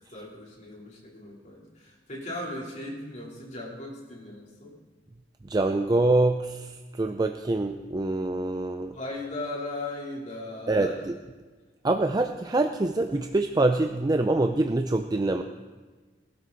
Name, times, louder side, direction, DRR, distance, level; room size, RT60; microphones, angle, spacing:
voice 1, 0.1-4.8 8.9-11.0, left 2 dB, 40° left, -3 dB, 3.5 m, -37 dB
voice 2, 5.4-9.0 10.7-11.1 11.8-15.4, right 2 dB, 20° right, 6 dB, 0.4 m, -25 dB
19.5 x 12.5 x 4.0 m, 1.4 s
head